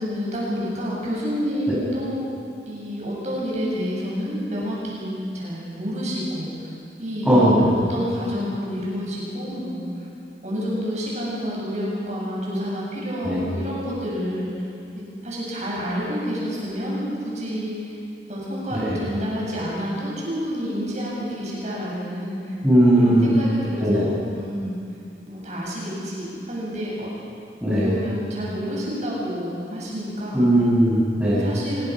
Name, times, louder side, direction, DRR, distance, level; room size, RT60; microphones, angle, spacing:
voice 1, 0.0-2.2 2.7-6.7 7.0-10.1 10.4-18.0 18.3-22.5 22.9-24.8 25.3-27.1 27.8-30.5 31.3-31.9, equal, 40° right, -5 dB, 7.6 m, -29 dB
voice 2, 7.2-7.9 13.2-13.4 18.7-19.0 22.6-23.3 23.8-24.1 27.6-27.9 30.3-31.5, right 1 dB, 5° right, -8 dB, 6.5 m, -18 dB
25.5 x 21.5 x 6.1 m, 2.4 s
head